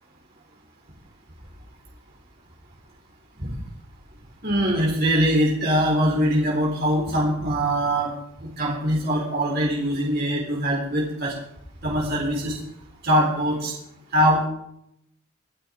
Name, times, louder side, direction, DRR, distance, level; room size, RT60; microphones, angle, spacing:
voice 1, 4.4-8.1 8.4-11.3 11.8-12.6 13.0-13.7 14.1-14.5, equal, 50° right, -2 dB, 3.9 m, -22 dB
26.5 x 9.1 x 3.5 m, 0.74 s
head